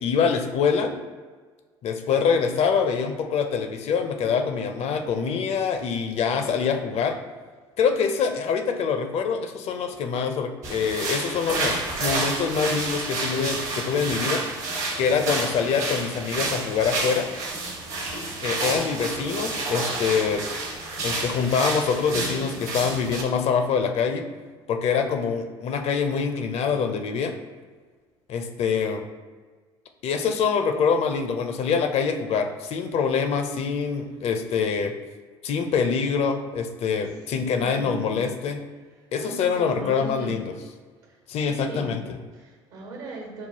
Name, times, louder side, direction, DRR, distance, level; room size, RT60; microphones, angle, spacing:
voice 1, 0.0-0.9 1.8-7.2 7.8-14.4 15.0-17.3 18.4-20.4 21.0-24.2 24.7-27.3 28.3-29.1 30.0-34.9 35.4-38.6 39.1-40.5 41.3-42.2, left 6 dB, 45° left, 5 dB, 0.5 m, -25 dB
sound 1, 10.6-23.2, right 3 dB, 55° right, 1.0 m, -30 dB
voice 2, 37.3-38.3 39.2-40.4 41.0-42.0 42.4-43.5, right 2 dB, 70° right, -1 dB, 1.2 m, -38 dB
5.4 x 2.3 x 2.8 m, 1.4 s
figure-of-eight pair, 60°, 14 cm